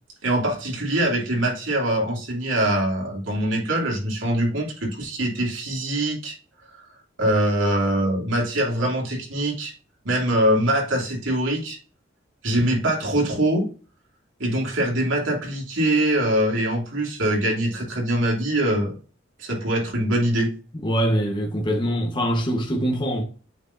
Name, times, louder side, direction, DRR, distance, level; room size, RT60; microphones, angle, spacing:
voice 1, 0.2-6.4 7.2-9.7 10.0-11.8 12.4-13.7 14.4-19.0 19.4-20.5, right 1 dB, 85° right, 2.9 m, -23 dB
voice 2, 20.8-23.2, equal, 25° left, 1.2 m, -23 dB
8.4 x 4.5 x 2.7 m
head